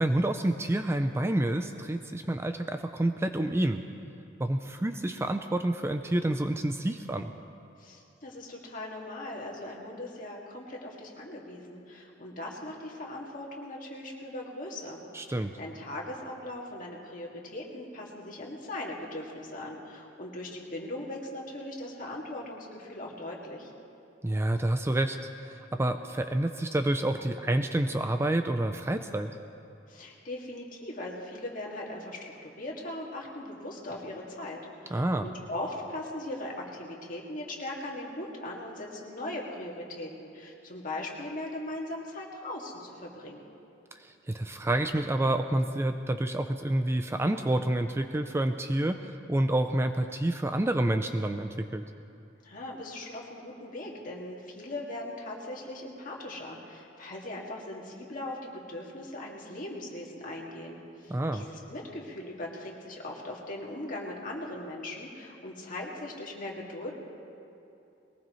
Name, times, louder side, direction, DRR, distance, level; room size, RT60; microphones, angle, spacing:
voice 1, 0.0-3.8 4.4-7.3 15.1-15.6 24.2-25.2 25.4-29.3 34.9-35.3 44.0-51.8 61.1-61.5, right 1 dB, 15° right, 7 dB, 0.4 m, -28 dB
voice 2, 7.8-15.0 15.3-23.7 29.9-43.4 52.4-66.9, left 1 dB, 45° left, -2 dB, 2.2 m, -39 dB
21.5 x 19.0 x 3.2 m, 2.7 s
head